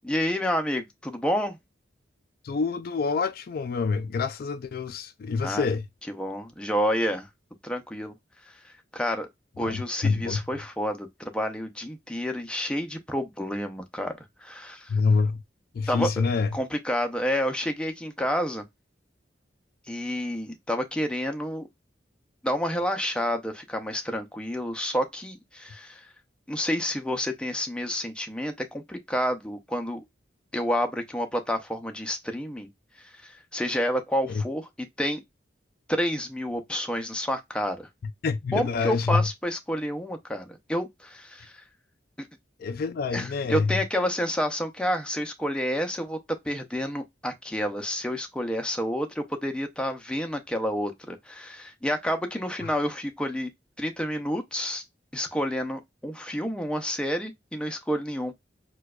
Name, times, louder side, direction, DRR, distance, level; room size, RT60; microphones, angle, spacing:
voice 1, 0.0-1.6 5.4-5.7 6.1-7.3 7.6-8.1 8.4-9.3 9.6-14.1 14.4-14.9 15.9-16.2 16.5-18.6 19.9-21.7 22.4-26.1 26.5-30.0 30.5-32.7 33.0-34.7 35.0-35.2 35.9-37.9 38.5-41.6 42.2-42.3 43.1-46.2 46.4-53.5 53.8-54.8 55.1-58.3, equal, 5° left, 0.5 m, -29 dB
voice 2, 2.4-5.8 9.6-10.4 14.9-15.4 15.7-16.5 34.3-34.4 38.2-39.2 42.6-43.7, left 4 dB, 55° left, 0.3 m, -26 dB
4.4 x 2.3 x 2.3 m
head